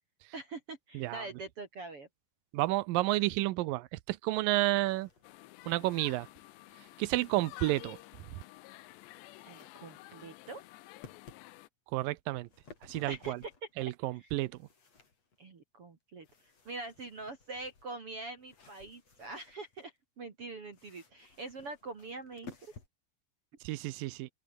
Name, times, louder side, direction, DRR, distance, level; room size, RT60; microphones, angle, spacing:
voice 1, 0.3-2.1 9.4-10.6 13.1-13.5 14.2-14.3 15.4-22.7, right 3 dB, 40° right, 2.7 m, -44 dB
voice 2, 0.9-1.2 2.5-5.1 5.7-6.3 7.0-8.0 11.9-12.5 12.8-13.4 13.8-14.5 23.6-24.3, right 18 dB, 80° right, 2.0 m, -31 dB
sound 1, 4.4-6.6 7.0-8.2 8.7-9.7 10.1-10.6 11.0-11.4 12.2-13.7 14.2-15.5 16.2-19.9 20.7-22.9, left 4 dB, 40° left, 5.4 m, -57 dB
sound 2, 5.2-11.7, left 18 dB, 85° left, 3.1 m, -51 dB
open air
omnidirectional pair, 4.9 m